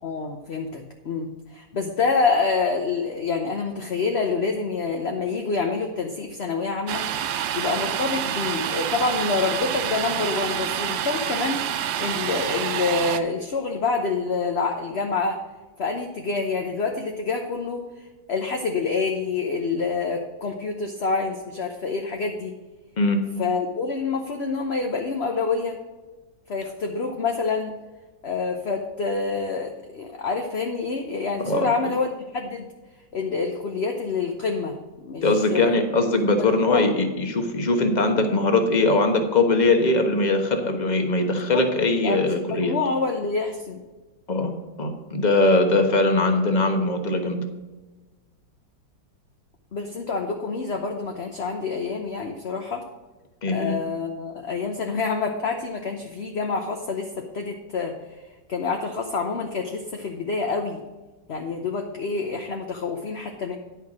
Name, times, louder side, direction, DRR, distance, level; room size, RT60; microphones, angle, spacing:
voice 1, 0.0-15.4 15.8-22.5 23.4-25.8 26.5-27.8 28.2-32.7 33.1-35.8 36.3-36.9 41.5-41.6 42.0-43.8 49.7-52.8 53.5-58.0 58.5-60.8 61.3-63.6, left 4 dB, 45° left, 3 dB, 0.9 m, -27 dB
Domestic sounds home sounds, 6.9-13.2, right 10 dB, 85° right, 1.4 m, -27 dB
voice 2, 35.2-42.7 44.3-44.5 44.8-47.4 53.4-53.7, left 2 dB, 25° left, 5 dB, 1.1 m, -21 dB
10.5 x 5.7 x 6.2 m, 1.2 s
omnidirectional pair, 2.0 m